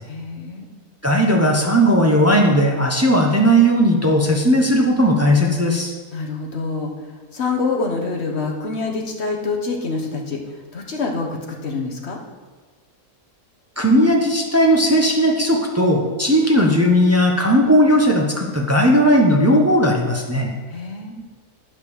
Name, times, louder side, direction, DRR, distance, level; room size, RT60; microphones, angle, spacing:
voice 1, 0.0-0.7 6.1-7.1 7.3-12.2 20.7-21.2, left 4 dB, 45° left, 1 dB, 1.4 m, -26 dB
voice 2, 1.0-5.9 13.8-20.5, equal, 10° right, 0 dB, 0.8 m, -16 dB
9.0 x 5.8 x 6.6 m, 1.4 s
omnidirectional pair, 1.6 m